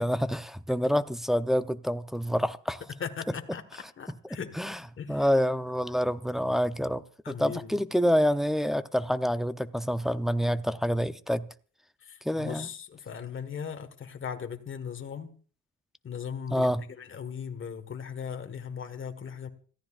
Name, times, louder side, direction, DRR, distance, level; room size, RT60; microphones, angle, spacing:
voice 1, 0.0-2.8 4.6-4.8 5.1-11.5 12.2-12.7 16.5-16.8, equal, ahead, 0.7 m, -27 dB
voice 2, 3.0-3.6 4.0-4.6 4.9-5.3 7.2-7.7 12.0-15.3 16.0-16.7 17.0-19.5, left 7 dB, 40° left, 1.6 m, -38 dB
26.5 x 14.5 x 2.5 m
cardioid pair, 90°, 30 cm